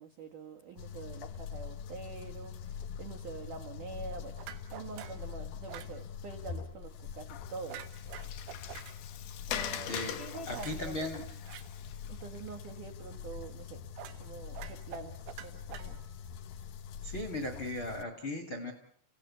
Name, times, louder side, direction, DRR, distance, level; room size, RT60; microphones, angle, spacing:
voice 1, 0.0-4.4 4.7-7.9 8.8-9.0 9.5-11.2 11.5-11.7 12.1-13.8 14.2-16.0, right 4 dB, 70° right, 3 dB, 1.9 m, -46 dB
sound 1, 0.8-18.0, left 7 dB, 85° left, 2.0 m, -44 dB
sound 2, 4.4-5.3 5.7-6.0 7.7-9.0 10.5-11.6 14.0-14.2 14.5-16.3, right 12 dB, 90° right, 4.0 m, -47 dB
Water, 7.3-12.7, left 10 dB, 65° left, 2.8 m, -42 dB
voice 2, 10.5-11.2 17.0-18.7, left 1 dB, 40° left, 7 dB, 1.9 m, -37 dB
30.0 x 17.0 x 8.5 m, 0.67 s
omnidirectional pair, 5.8 m